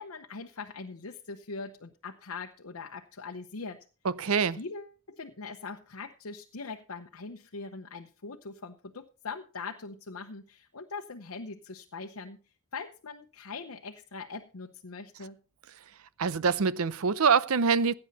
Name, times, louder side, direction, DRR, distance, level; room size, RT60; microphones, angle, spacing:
voice 1, 0.0-3.8 4.5-12.4 12.7-15.4, left 4 dB, 80° left, 0.9 m, -41 dB
voice 2, 4.2-4.6 16.2-17.9, right 5 dB, 85° right, 0.6 m, -24 dB
16.5 x 8.9 x 4.1 m
head